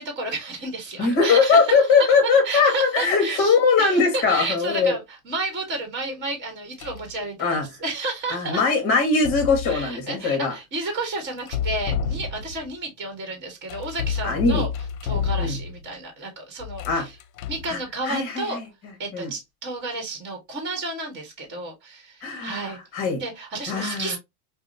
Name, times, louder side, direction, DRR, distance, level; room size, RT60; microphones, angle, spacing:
voice 1, 0.0-1.7 2.0-2.1 2.4-8.7 9.7-14.7 15.0-17.2 17.5-18.6 19.0-22.8 23.1-24.2, right 2 dB, 25° right, 1.2 m, -31 dB
voice 2, 1.0-4.9 7.4-7.6 8.3-10.5 14.2-14.7 15.4-15.6 16.9-17.0 17.7-17.8 18.0-18.6 19.1-19.3 22.2-23.2 23.7-24.2, left 4 dB, 30° left, 1.3 m, -21 dB
sound 1, 6.8-7.1 9.0-9.9 11.4-12.7 13.7-15.9 16.6-17.7, left 7 dB, 70° left, 0.6 m, -29 dB
4.8 x 2.1 x 2.6 m
supercardioid pair, 160°, 44 cm